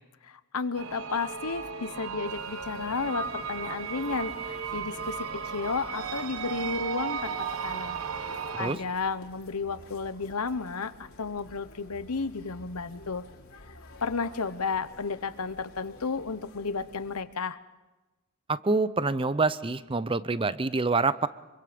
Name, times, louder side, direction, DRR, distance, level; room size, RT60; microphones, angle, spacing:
voice 1, 0.2-8.0 8.5-13.2 14.0-17.6, left 4 dB, 85° left, 13 dB, 1.0 m, -33 dB
sound 1, 0.7-8.7, right 6 dB, 65° right, 1.3 m, -35 dB
sound 2, 2.3-17.2, left 2 dB, 65° left, 2.8 m, -51 dB
voice 2, 18.5-21.3, right 3 dB, 25° right, 15 dB, 0.6 m, -26 dB
26.0 x 24.0 x 5.2 m, 1.1 s
head